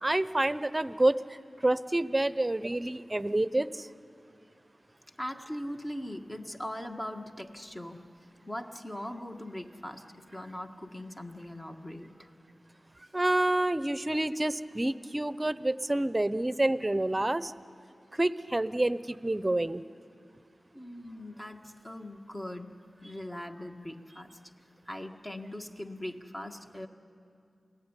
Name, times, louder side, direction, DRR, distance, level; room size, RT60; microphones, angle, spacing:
voice 1, 0.0-3.9 13.1-17.5 18.1-19.8, right 1 dB, 25° right, 15 dB, 0.8 m, -28 dB
voice 2, 5.2-8.1 8.5-12.3 20.7-24.4 24.9-26.9, left 1 dB, 25° left, 3 dB, 1.8 m, -40 dB
28.5 x 18.0 x 9.9 m, 2.4 s
cardioid pair, 40°, 0 cm